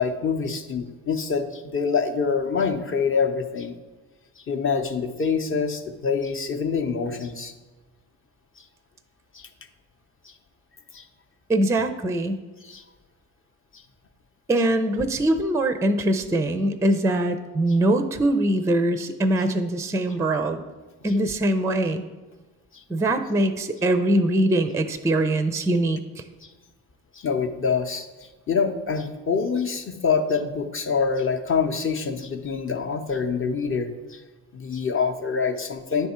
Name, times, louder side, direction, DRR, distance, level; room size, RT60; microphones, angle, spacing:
voice 1, 0.0-3.7 4.5-7.5 9.3-9.5 10.9-11.0 12.6-12.8 27.2-28.1 28.5-34.2 34.5-36.1, left 5 dB, 35° left, 4 dB, 0.8 m, -25 dB
voice 2, 11.5-12.4 14.5-20.6 21.0-22.1 22.9-26.0, right 1 dB, 10° right, 9 dB, 0.4 m, -22 dB
9.4 x 3.5 x 4.3 m, 1.2 s
supercardioid pair, 75°, 36 cm